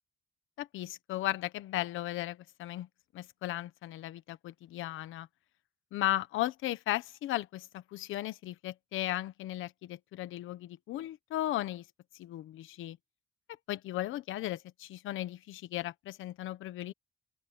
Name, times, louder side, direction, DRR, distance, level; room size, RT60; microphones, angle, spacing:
voice 1, 0.6-2.9 3.1-5.3 5.9-11.8 12.2-13.0 13.7-16.9, left 14 dB, 85° left, 1.1 m, -36 dB
open air
cardioid pair, 90°, 20 cm